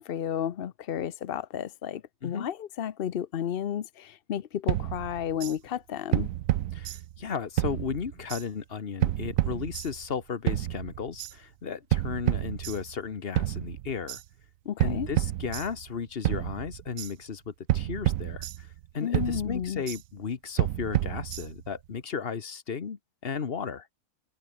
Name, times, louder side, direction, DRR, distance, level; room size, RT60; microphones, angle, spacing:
voice 1, 0.0-6.3 14.7-15.1 19.0-19.8, left 9 dB, 55° left, 0.6 m, -32 dB
sound 1, 4.7-5.5 6.1-7.3 7.6-8.4 9.0-10.1 10.5-11.3 11.9-13.1 13.4-14.2 14.8-16.0 16.2-17.1 17.7-18.9 19.1-20.0 20.6-21.7, right 13 dB, 70° right, 1.0 m, -29 dB
voice 2, 6.7-14.2 14.8-18.7 18.9-23.9, left 6 dB, 40° left, 1.3 m, -35 dB
omnidirectional pair, 1.6 m